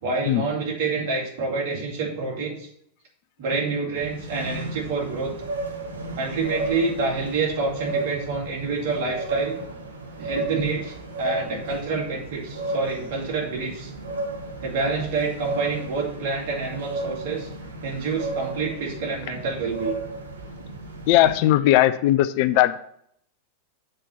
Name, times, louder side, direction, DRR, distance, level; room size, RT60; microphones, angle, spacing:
voice 1, 0.0-2.7 3.4-5.4 6.2-9.6 10.2-13.9 14.6-17.5 17.8-20.0, right 4 dB, 50° right, -2 dB, 2.4 m, -27 dB
sound 1, 4.0-21.4, right 2 dB, 70° right, 1.0 m, -34 dB
voice 2, 21.1-22.8, left 14 dB, 45° left, 12 dB, 0.4 m, -18 dB
7.4 x 4.4 x 5.4 m, 0.68 s
figure-of-eight pair, 90°, 0 cm